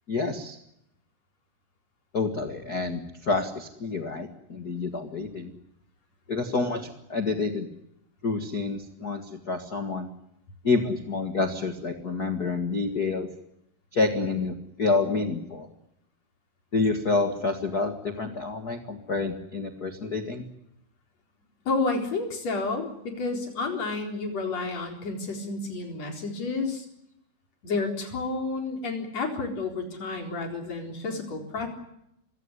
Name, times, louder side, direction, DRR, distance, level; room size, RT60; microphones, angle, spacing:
voice 1, 0.1-0.6 2.1-5.5 6.3-7.7 8.2-10.1 10.6-13.3 13.9-15.7 16.7-20.4, left 3 dB, 70° left, 6 dB, 0.9 m, -28 dB
voice 2, 21.7-26.9 27.6-31.7, left 3 dB, 40° left, 3 dB, 5.0 m, -30 dB
25.5 x 16.5 x 9.8 m, 0.80 s
omnidirectional pair, 4.8 m